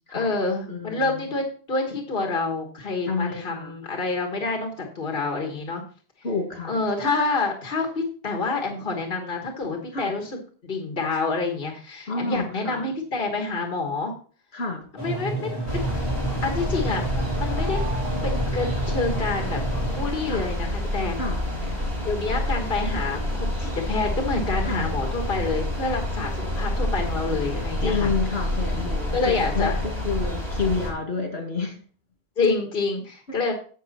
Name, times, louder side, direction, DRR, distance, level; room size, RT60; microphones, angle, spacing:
voice 1, 0.1-5.8 6.7-10.4 10.6-14.1 14.9-15.5 16.4-17.1 17.3-17.8 18.2-19.6 20.0-21.2 22.0-28.1 29.1-29.8 32.4-33.5, left 3 dB, 60° left, 3 dB, 1.6 m, -27 dB
voice 2, 0.7-1.2 3.0-3.7 6.2-6.8 9.9-10.1 12.1-12.9 14.5-14.8 20.3-20.5 21.2-21.4 24.6-24.9 27.8-31.8 33.3-33.4, left 4 dB, 80° left, 3 dB, 2.5 m, -29 dB
sound 1, 15.0-20.0, right 3 dB, 25° left, 2.7 m, -30 dB
sound 2, 15.7-30.9, left 1 dB, 90° right, 4.3 m, -28 dB
11.0 x 7.2 x 4.1 m, 0.42 s
omnidirectional pair, 1.0 m